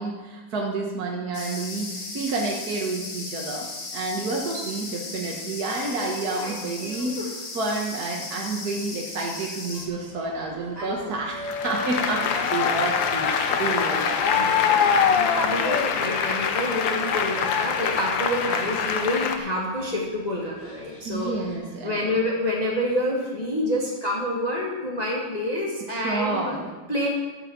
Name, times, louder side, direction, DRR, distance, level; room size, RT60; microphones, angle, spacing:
voice 1, 0.0-3.7 3.9-14.4 21.1-22.2 25.9-26.7 27.0-27.1, right 3 dB, 60° right, -1 dB, 1.8 m, -29 dB
sound 1, 1.3-9.9, left 3 dB, 50° left, 2.0 m, -36 dB
voice 2, 6.3-7.1 10.8-11.1 14.2-21.3 21.8-26.5 26.9-27.1, left 1 dB, 20° left, -3 dB, 1.8 m, -28 dB
sound 2, 9.7-21.5, left 1 dB, 75° left, 4.1 m, -43 dB
Applause, 11.4-19.4, left 7 dB, 90° left, 1.6 m, -24 dB
13.0 x 6.7 x 7.3 m, 1.2 s
omnidirectional pair, 2.0 m